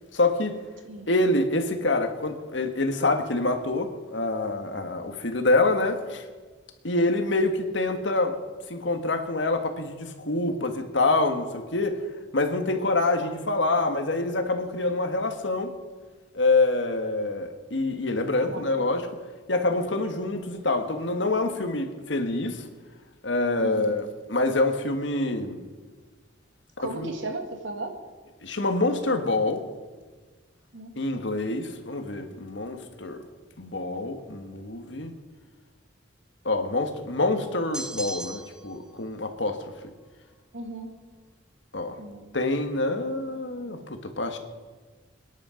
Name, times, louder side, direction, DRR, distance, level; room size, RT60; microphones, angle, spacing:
voice 1, 0.1-0.6 1.1-6.2 6.8-8.4 8.7-12.0 12.3-15.7 16.3-19.1 19.5-22.6 23.2-25.6 26.8-27.1 28.4-29.6 31.0-33.2 33.6-35.1 36.5-39.6 41.7-42.0 42.3-44.4, left 2 dB, 80° left, 6 dB, 1.7 m, -26 dB
voice 2, 23.6-23.9 26.8-27.9 30.7-31.8 40.5-40.9 42.0-42.4 43.3-44.0, right 2 dB, 90° right, 4 dB, 2.4 m, -37 dB
sound 1, 37.7-38.7, right 1 dB, 5° right, 1.1 m, -36 dB
25.0 x 10.5 x 5.1 m, 1.4 s
head